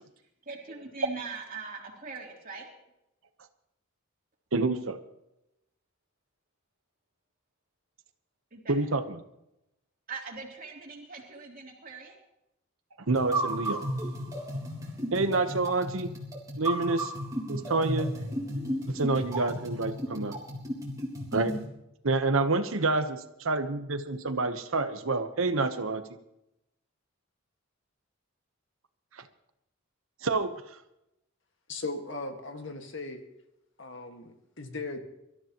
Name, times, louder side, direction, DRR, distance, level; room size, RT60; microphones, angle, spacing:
voice 1, 0.4-2.7 8.5-8.8 10.1-12.2 17.0-17.1, right 4 dB, 40° right, 0 dB, 3.2 m, -41 dB
voice 2, 4.5-5.0 8.7-9.2 13.1-13.8 15.1-16.1 16.6-17.1 17.5-18.2 18.9-20.4 21.3-21.6 22.0-26.1 29.1-29.2 30.2-30.8, right 3 dB, 80° right, 9 dB, 1.0 m, -28 dB
sound 1, 13.1-21.6, right 1 dB, 15° right, 3.5 m, -34 dB
voice 3, 31.7-33.2 33.8-35.0, left 3 dB, 60° left, 5 dB, 1.8 m, -38 dB
24.5 x 13.5 x 3.0 m, 0.85 s
head